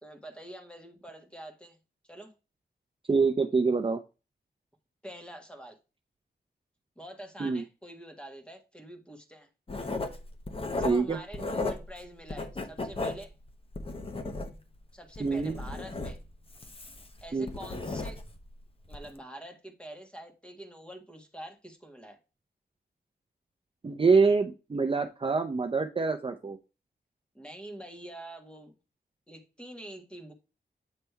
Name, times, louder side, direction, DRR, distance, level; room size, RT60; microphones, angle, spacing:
voice 1, 0.0-1.8 2.1-2.3 5.0-5.8 6.9-9.5 10.6-13.3 14.9-16.2 17.2-18.2 18.9-22.2 27.3-28.7 29.3-30.3, right 1 dB, 5° left, 1.6 m, -46 dB
voice 2, 3.1-4.0 7.4-7.6 10.8-11.2 15.2-15.5 17.3-17.5 23.8-26.6, right 4 dB, 30° right, 0.6 m, -25 dB
Writing, 9.7-12.0 12.3-14.8 15.1-18.4 18.9-19.1, left 2 dB, 30° left, 1.0 m, -35 dB
8.2 x 3.3 x 4.5 m
wide cardioid pair, 100°, 17 cm